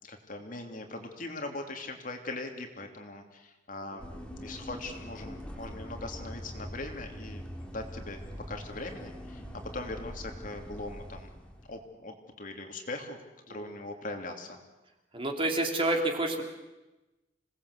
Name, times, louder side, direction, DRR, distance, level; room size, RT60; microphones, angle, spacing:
voice 1, 0.0-4.0 4.4-7.4 7.7-8.2 8.5-9.4 9.7-11.3 11.6-13.2 13.5-14.6, left 2 dB, 50° left, 4 dB, 3.0 m, -40 dB
sound 1, 4.0-11.8, equal, 5° left, 2.7 m, -43 dB
voice 2, 15.1-16.4, right 2 dB, 30° right, 3 dB, 3.1 m, -29 dB
27.0 x 19.0 x 8.2 m, 1.1 s
head